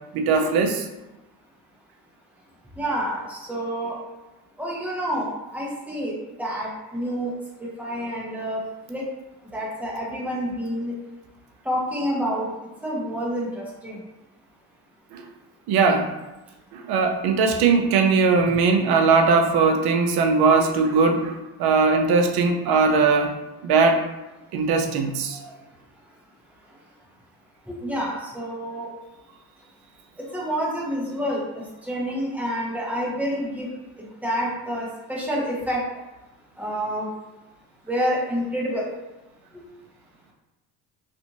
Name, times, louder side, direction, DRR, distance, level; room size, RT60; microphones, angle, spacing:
voice 1, 0.1-0.8 15.1-15.2 15.7-16.1 16.7-23.3 23.6-24.0 24.5-25.4, right 4 dB, 55° right, 4 dB, 0.6 m, -20 dB
voice 2, 2.8-4.0 4.6-6.1 6.4-7.3 7.8-8.6 8.9-9.0 9.5-10.9 11.7-12.5 12.8-14.0 27.7-28.9 30.3-33.7 34.2-35.8 36.6-37.1 37.9-38.9, equal, 5° right, -4 dB, 0.8 m, -28 dB
2.5 x 2.5 x 2.9 m, 1.0 s
supercardioid pair, 80°, 45 cm